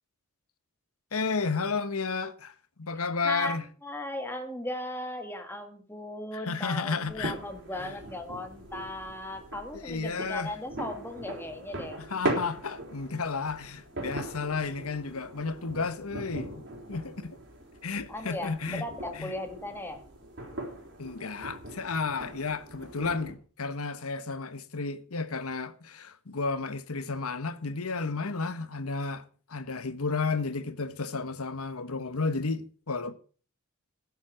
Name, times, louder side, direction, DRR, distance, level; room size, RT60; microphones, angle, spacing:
voice 1, 1.1-3.7 6.3-7.4 7.8-7.9 9.7-10.5 12.0-17.4 17.8-18.9 19.1-19.3 21.0-29.2 29.5-33.1, left 4 dB, 90° left, 1.2 m, -32 dB
voice 2, 3.2-12.0 18.1-20.0, left 1 dB, 10° left, 1.8 m, -37 dB
sound 1, 7.1-23.3, right 1 dB, 55° right, 4.1 m, -40 dB
11.5 x 7.4 x 7.5 m
head